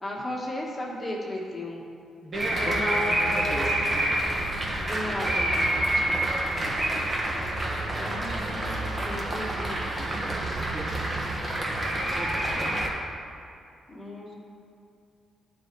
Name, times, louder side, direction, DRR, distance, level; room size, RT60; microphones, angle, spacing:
voice 1, 0.0-1.8 2.6-3.7 4.8-6.3 8.0-9.8 10.2-10.3 13.9-14.3, left 1 dB, 20° left, -4 dB, 1.5 m, -35 dB
voice 2, 2.2-4.1 6.6-6.8 10.7-11.4 12.2-12.4, right 1 dB, 40° right, -2 dB, 1.2 m, -36 dB
sound 1, 2.3-12.9, right 1 dB, 25° right, 1.2 m, -28 dB
11.0 x 4.0 x 4.6 m, 2.5 s
cardioid pair, 95°, 0 cm